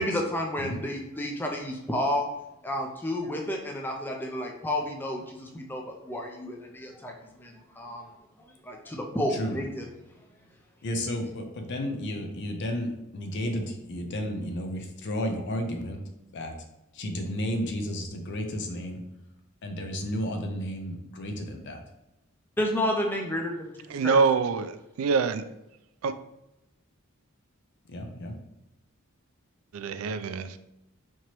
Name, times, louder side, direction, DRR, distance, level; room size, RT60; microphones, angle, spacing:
voice 1, 0.0-2.3 2.6-7.1 7.4-8.1 8.6-9.9 22.6-24.2, left 1 dB, 10° left, 0.4 m, -31 dB
voice 2, 10.8-16.0 16.3-16.5 16.9-19.0 19.6-21.8 27.9-28.4, equal, 55° left, 0.6 m, -32 dB
voice 3, 23.9-25.4 26.0-26.1 29.7-30.6, right 5 dB, 75° right, 0.3 m, -25 dB
4.5 x 2.9 x 2.9 m
head